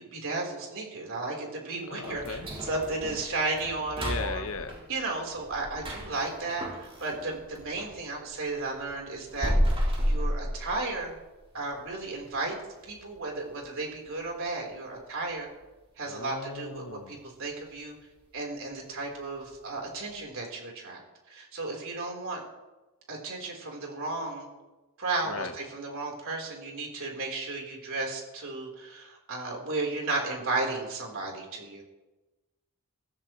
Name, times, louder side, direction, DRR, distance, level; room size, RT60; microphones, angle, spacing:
voice 1, 0.0-4.4 4.9-9.5 10.0-11.2 11.5-12.6 12.9-15.5 16.0-18.0 18.3-21.0 21.3-22.4 23.1-24.5 25.0-31.8, right 3 dB, 65° right, 0 dB, 4.3 m, -34 dB
voice 2, 1.9-2.5 4.0-4.8 16.1-17.2 25.2-25.5, left 4 dB, 65° left, 8 dB, 1.2 m, -37 dB
sound 1, 2.0-8.0 8.3-11.2 11.5-11.6 12.1-12.2 12.8-13.1 13.4-13.5 14.0-14.1, equal, 25° right, 4.7 m, -32 dB
22.5 x 14.5 x 3.3 m, 1.1 s
head